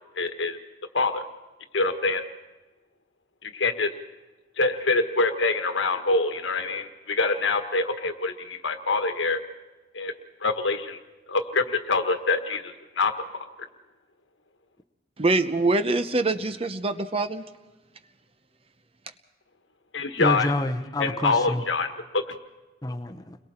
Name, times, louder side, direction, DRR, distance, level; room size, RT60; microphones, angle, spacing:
voice 1, 0.2-0.6 0.9-1.2 1.7-2.2 3.4-3.9 4.6-9.4 9.9-10.1 10.4-11.0 11.3-13.1 19.9-20.5 21.0-22.2, left 3 dB, 80° left, 7 dB, 1.5 m, -25 dB
voice 2, 15.2-17.5, right 2 dB, 30° right, 11 dB, 0.8 m, -24 dB
voice 3, 20.2-21.6 22.8-23.4, left 1 dB, 20° left, 6 dB, 0.8 m, -28 dB
29.5 x 22.0 x 4.4 m, 1.1 s
head